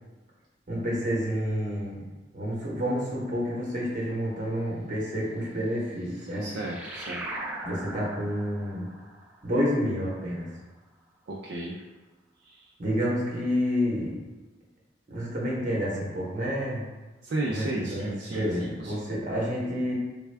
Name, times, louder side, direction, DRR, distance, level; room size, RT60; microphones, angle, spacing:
voice 1, 0.7-2.0 2.3-6.5 7.6-8.9 9.4-10.5 12.8-14.2 15.1-16.9 17.5-19.9, equal, 45° right, -5 dB, 1.0 m, -29 dB
sound 1, 5.8-10.9, right 2 dB, 10° right, 0.5 m, -41 dB
voice 2, 6.4-7.3 11.3-11.8 12.4-12.7 17.2-19.0, right 2 dB, 60° right, -4 dB, 0.4 m, -34 dB
3.5 x 2.2 x 3.3 m, 1.2 s
head